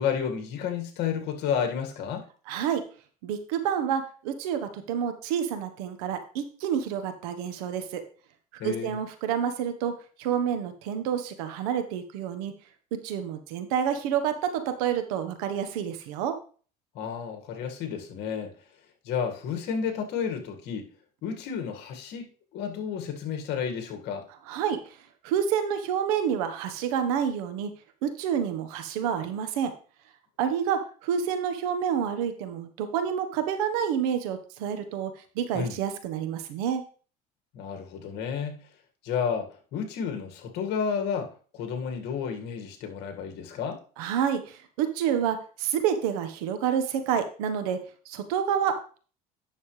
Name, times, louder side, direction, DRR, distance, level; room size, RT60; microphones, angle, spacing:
voice 1, 0.0-2.3 8.6-9.0 17.0-18.5 19.1-20.9 21.2-22.3 22.5-24.2 35.5-35.7 37.5-38.6 39.0-43.8, left 7 dB, 65° left, 4 dB, 1.9 m, -31 dB
voice 2, 2.5-2.8 3.2-8.0 8.6-9.9 10.2-12.5 13.0-16.3 24.5-24.8 25.2-27.7 28.0-29.7 30.4-36.8 44.0-47.8 48.1-49.0, right 8 dB, 90° right, 8 dB, 1.2 m, -28 dB
9.4 x 6.6 x 3.2 m, 0.41 s
supercardioid pair, 95°, 18 cm